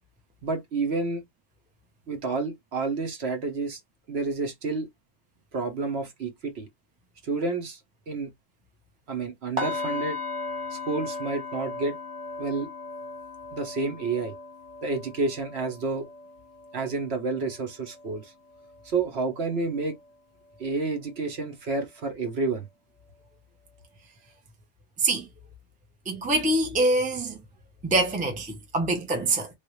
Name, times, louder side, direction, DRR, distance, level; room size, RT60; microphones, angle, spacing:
voice 1, 0.4-1.2 2.1-3.8 4.1-4.9 5.5-6.7 7.2-7.8 8.1-8.3 9.1-10.2 10.7-12.0 12.4-12.7 13.5-14.3 14.8-16.1 16.7-18.3 18.8-20.0 20.6-22.7, right 3 dB, 55° right, 1.0 m, -29 dB
sound 1, 9.6-19.5 19.8-20.1 20.5-20.7, left 2 dB, 25° right, 1.0 m, -37 dB
voice 2, 26.1-27.4 27.8-29.5, right 2 dB, 10° right, 0.6 m, -25 dB
3.2 x 2.4 x 3.0 m
omnidirectional pair, 1.4 m